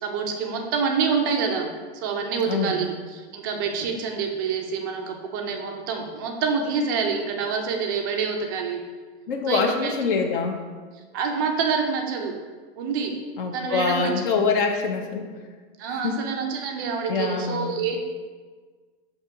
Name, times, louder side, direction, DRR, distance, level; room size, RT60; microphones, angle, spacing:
voice 1, 0.0-1.7 2.0-8.8 9.5-9.9 11.1-12.3 12.8-13.1 13.5-14.1 15.8-18.0, right 5 dB, 20° right, 3 dB, 0.3 m, -27 dB
voice 2, 2.5-2.8 9.3-10.6 13.4-15.3 15.9-16.2 17.1-17.7, left 5 dB, 55° left, 3 dB, 0.9 m, -25 dB
5.8 x 2.9 x 5.6 m, 1.5 s
supercardioid pair, 170°, 31 cm